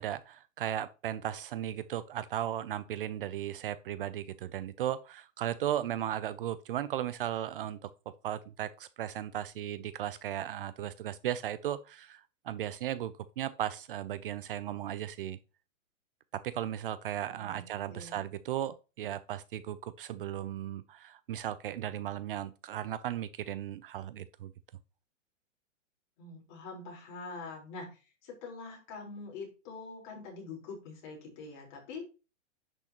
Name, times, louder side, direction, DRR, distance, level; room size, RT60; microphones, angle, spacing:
voice 1, 0.0-7.9 8.2-15.4 16.4-24.5, right 11 dB, 45° right, 0.5 m, -36 dB
voice 2, 17.3-18.2 26.2-32.0, left 4 dB, 40° left, 4.1 m, -45 dB
10.0 x 6.3 x 2.9 m
hypercardioid pair, 150°, 38 cm